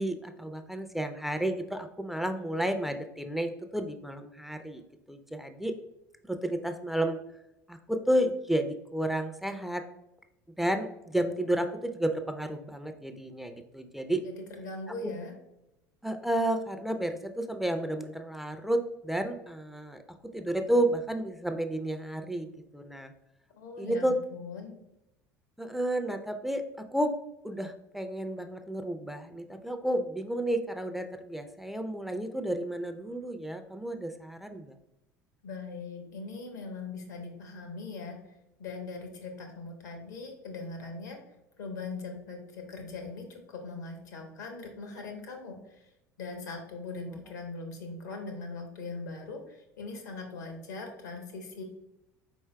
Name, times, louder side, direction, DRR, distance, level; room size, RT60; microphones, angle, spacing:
voice 1, 0.0-4.8 5.1-5.8 6.3-7.2 7.7-9.8 10.6-14.2 15.0-15.1 16.0-20.0 20.3-23.1 23.8-24.2 25.6-27.1 27.4-34.7 47.0-47.2, right 1 dB, 5° right, 7 dB, 0.4 m, -31 dB
voice 2, 14.2-15.3 23.5-24.8 35.4-38.2 38.6-41.2 41.6-45.9 46.2-51.6, left 3 dB, 75° left, 4 dB, 1.0 m, -40 dB
4.6 x 4.3 x 2.2 m, 0.88 s
hypercardioid pair, 70°, 10 cm